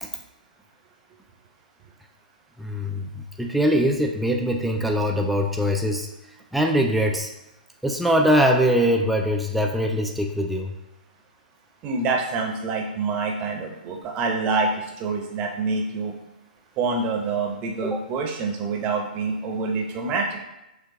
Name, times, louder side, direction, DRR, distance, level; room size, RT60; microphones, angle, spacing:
voice 1, 2.6-6.1 6.5-7.3 7.8-10.7 17.8-18.0, equal, ahead, 1 dB, 0.4 m, -22 dB
voice 2, 11.8-16.1 16.8-20.4, right 4 dB, 25° right, 1 dB, 0.7 m, -26 dB
6.2 x 2.2 x 2.8 m, 0.93 s
figure-of-eight pair, 120°, 5 cm